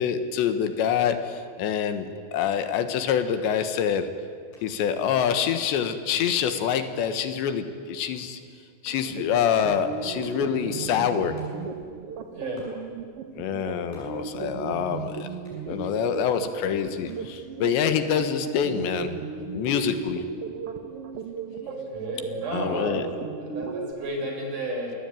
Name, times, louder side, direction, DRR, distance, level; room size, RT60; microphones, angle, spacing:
voice 1, 0.0-4.3 4.6-8.4 8.8-11.6 13.4-15.3 15.7-19.1 19.5-20.2 22.5-23.1, left 8 dB, 85° left, 9 dB, 3.7 m, -26 dB
sound 1, 4.5-4.7 4.9-5.7 6.5-6.9 8.0-8.3 8.8-9.2 10.2-10.6 11.4-11.9 12.6-12.9 13.9-14.3 15.4-15.8 17.1-17.3 18.8-19.2, left 1 dB, 65° left, 9.8 m, -55 dB
sound 2, 8.9-23.9, right 6 dB, 75° right, 1.3 m, -36 dB
voice 2, 12.3-12.7 21.6-23.1 23.4-24.9, right 1 dB, 45° right, 1 dB, 6.6 m, -32 dB
29.0 x 20.5 x 9.2 m, 2.1 s
omnidirectional pair, 5.0 m